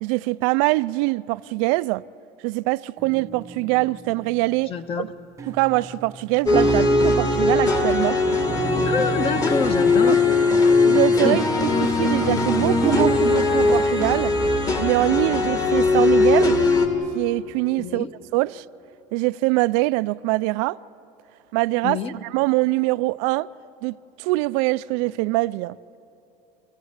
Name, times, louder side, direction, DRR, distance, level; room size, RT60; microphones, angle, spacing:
voice 1, 0.0-2.0 2.4-5.1 5.5-8.2 10.1-10.2 10.8-11.5 11.8-14.3 14.8-16.6 17.1-18.1 18.3-18.6 19.1-20.8 21.5-23.5 23.8-25.8, right 21 dB, 80° right, 0.4 m, -23 dB
sound 1, 3.0-4.5 5.4-13.2, right 6 dB, 20° right, 0.5 m, -30 dB
voice 2, 4.7-5.1 8.8-10.3 11.2-11.4 17.8-18.1 21.8-22.1, left 6 dB, 35° left, 1.1 m, -27 dB
sound 2, 6.5-16.9, left 3 dB, 20° left, 1.4 m, -20 dB
27.5 x 15.5 x 8.1 m
cardioid pair, 155°, 16 cm